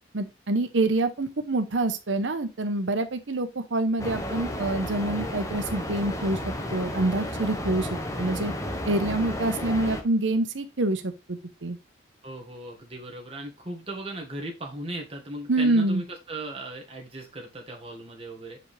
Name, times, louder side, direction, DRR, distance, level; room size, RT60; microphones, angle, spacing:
voice 1, 0.1-7.9 8.2-8.5 8.8-11.8 15.5-16.0, right 2 dB, 90° right, 8 dB, 0.9 m, -26 dB
sound 1, 4.0-10.0, left 1 dB, 15° left, 1.1 m, -32 dB
voice 2, 12.2-18.6, right 1 dB, 30° right, 0 dB, 1.8 m, -37 dB
7.3 x 5.1 x 3.3 m, 0.26 s
head